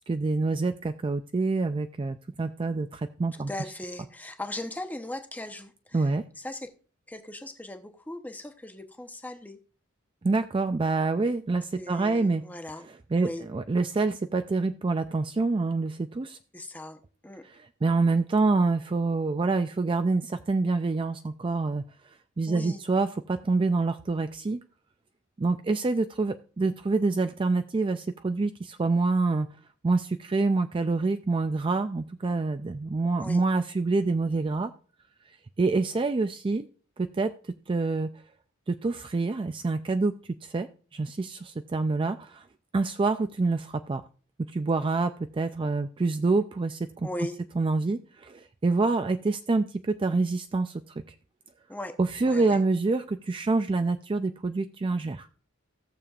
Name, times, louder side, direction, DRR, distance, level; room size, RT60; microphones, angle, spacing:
voice 1, 0.1-3.5 5.9-6.2 10.2-12.4 13.1-16.4 17.4-21.8 22.4-24.6 25.4-29.5 29.8-34.7 35.6-36.7 37.0-37.3 37.7-38.1 38.7-40.1 40.4-42.5 42.7-44.0 44.4-47.1 47.6-50.8 52.0-55.3, right 3 dB, 25° right, 0.4 m, -26 dB
voice 2, 3.5-6.1 6.4-6.7 7.1-9.6 11.7-12.9 13.2-13.4 16.5-17.0 17.2-17.4 22.5-22.8 33.2-33.4 47.0-47.4 51.7-52.0 52.3-52.6, left 1 dB, 10° left, 0.8 m, -38 dB
17.5 x 6.9 x 2.4 m
head